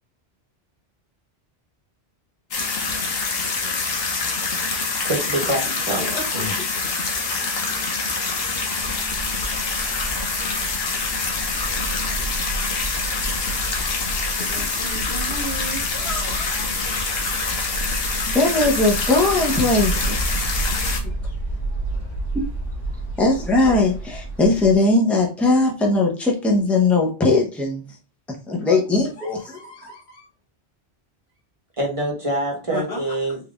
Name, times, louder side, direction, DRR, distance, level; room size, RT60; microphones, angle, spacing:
sound 1, 2.5-21.0, left 4 dB, 65° left, 1.0 m, -25 dB
voice 1, 4.6-6.5 31.8-33.4, right 1 dB, 30° right, -1 dB, 1.1 m, -26 dB
voice 2, 5.9-6.7 14.4-17.8 28.6-28.8 29.2-30.3 32.7-33.2, left 1 dB, 85° left, 0 dB, 1.6 m, -35 dB
sound 2, 8.8-24.8, right 2 dB, 40° left, 2.0 m, -31 dB
voice 3, 18.3-20.2 22.3-22.5 23.2-27.8 28.5-29.6, left 2 dB, ahead, -1 dB, 0.7 m, -19 dB
3.8 x 2.7 x 3.5 m, 0.34 s
omnidirectional pair, 1.1 m